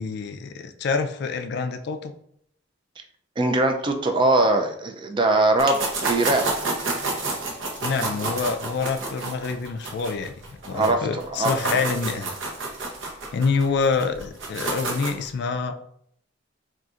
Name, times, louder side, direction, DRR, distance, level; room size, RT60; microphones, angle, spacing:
voice 1, 0.0-2.1 7.8-12.3 13.3-15.8, left 5 dB, 55° left, 7 dB, 0.3 m, -26 dB
voice 2, 3.4-5.8 6.1-6.4 10.7-11.0 11.3-11.8, right 2 dB, 25° right, 4 dB, 0.3 m, -21 dB
sound 1, 5.6-10.9 11.2-15.3, right 3 dB, 75° right, 0.8 m, -29 dB
3.9 x 2.4 x 2.4 m, 0.68 s
head